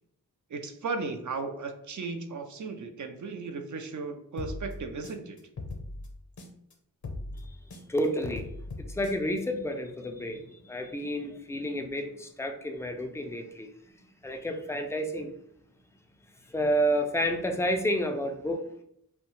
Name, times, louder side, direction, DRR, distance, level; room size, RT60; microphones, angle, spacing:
voice 1, 0.5-5.4, right 4 dB, 55° right, 5 dB, 0.4 m, -36 dB
sound 1, 4.4-6.7 7.0-9.4, left 2 dB, 55° left, 0.6 m, -39 dB
voice 2, 7.9-8.5 8.8-13.7 14.2-15.3 16.5-18.6, equal, 10° left, 4 dB, 0.3 m, -30 dB
2.7 x 2.2 x 2.9 m, 0.74 s
wide cardioid pair, 85°, 36 cm